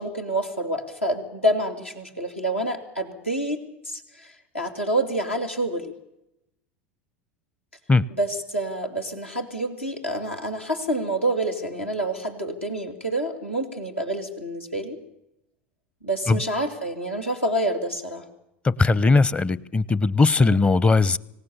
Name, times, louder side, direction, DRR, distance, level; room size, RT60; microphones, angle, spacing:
voice 1, 0.0-5.9 8.1-15.0 16.0-18.2 20.4-20.6, right 1 dB, 90° left, 1 dB, 2.8 m, -28 dB
voice 2, 18.6-21.2, left 3 dB, 20° left, 22 dB, 0.7 m, -19 dB
25.5 x 16.5 x 7.1 m, 0.87 s
figure-of-eight pair, 80°, 6 cm